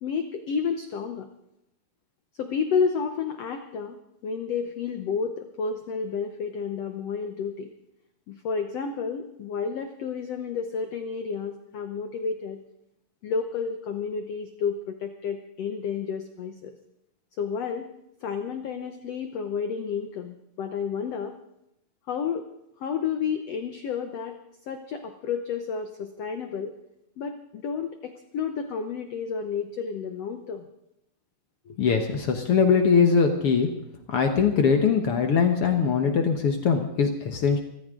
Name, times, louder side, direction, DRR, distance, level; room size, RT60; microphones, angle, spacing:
voice 1, 0.0-1.3 2.4-7.7 8.3-12.6 13.2-16.8 17.4-17.9 18.2-21.3 22.1-22.4 22.8-24.4 24.7-26.7 27.2-30.7, left 6 dB, 85° left, 7 dB, 1.4 m, -31 dB
voice 2, 31.8-33.7 34.1-37.6, left 6 dB, 70° left, 5 dB, 1.4 m, -21 dB
25.5 x 14.0 x 3.8 m, 0.82 s
omnidirectional pair, 4.3 m